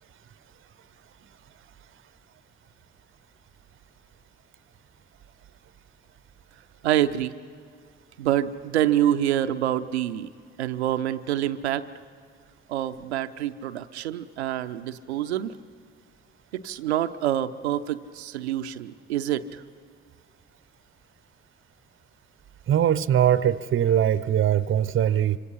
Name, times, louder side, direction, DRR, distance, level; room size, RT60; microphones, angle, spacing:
voice 1, 6.8-7.3 8.2-10.3 10.6-11.8 12.7-15.6 16.5-19.6, right 11 dB, 85° right, 10 dB, 0.5 m, -26 dB
voice 2, 22.7-25.4, right 10 dB, 40° right, 18 dB, 0.7 m, -21 dB
26.5 x 25.0 x 5.7 m, 2.1 s
figure-of-eight pair, 40°, 32 cm